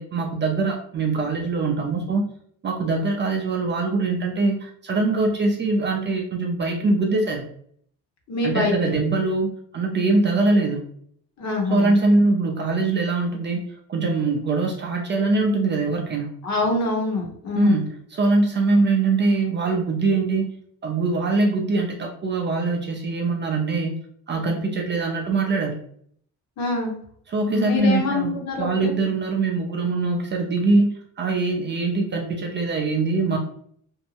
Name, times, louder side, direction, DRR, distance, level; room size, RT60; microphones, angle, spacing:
voice 1, 0.0-2.3 2.6-7.5 8.4-10.8 11.7-16.4 17.5-20.5 20.8-24.0 24.3-25.8 27.3-33.4, right 3 dB, 30° right, 1 dB, 0.4 m, -22 dB
voice 2, 8.3-9.0 11.4-11.9 16.4-17.8 26.6-27.0 27.5-28.9, left 3 dB, 50° left, 0 dB, 0.9 m, -25 dB
2.7 x 2.0 x 2.8 m, 0.62 s
cardioid pair, 120°, 36 cm